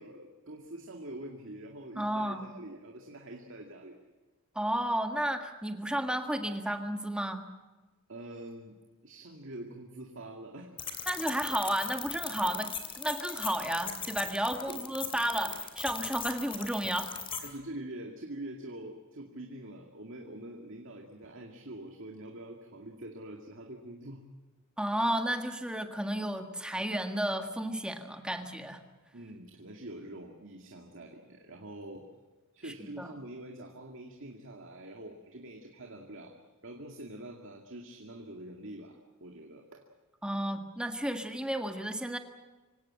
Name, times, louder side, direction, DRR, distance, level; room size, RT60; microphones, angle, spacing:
voice 1, 0.0-4.0 8.1-8.7 9.0-10.9 14.7-14.8 17.4-24.3 29.1-32.1 32.5-36.4 36.6-39.8, right 1 dB, 60° right, 2 dB, 2.3 m, -45 dB
voice 2, 2.0-2.5 4.6-7.5 11.1-17.1 24.8-28.8 32.8-33.1 40.2-42.2, right 1 dB, 5° right, 5 dB, 1.7 m, -32 dB
sound 1, 10.8-17.5, left 7 dB, 25° left, 2.8 m, -39 dB
25.5 x 17.0 x 8.9 m, 1.2 s
head